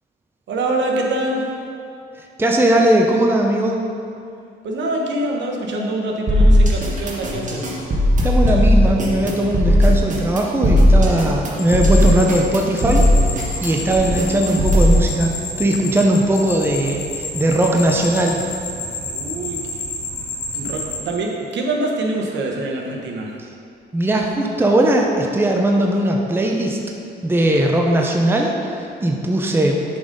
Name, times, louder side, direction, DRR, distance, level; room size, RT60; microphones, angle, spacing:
voice 1, 0.5-1.5 4.6-7.8 19.1-19.8 20.5-23.3, right 2 dB, 65° right, 0 dB, 1.0 m, -24 dB
voice 2, 2.4-3.8 8.2-15.3 15.6-18.4 23.9-26.8 27.2-29.8, right 1 dB, 10° right, 1 dB, 0.6 m, -18 dB
sound 1, 6.3-15.0, equal, 40° right, 1.3 m, -16 dB
sound 2, 11.6-21.0, left 2 dB, 85° left, 1.3 m, -30 dB
6.8 x 4.0 x 5.2 m, 2.5 s
cardioid pair, 90°, 20 cm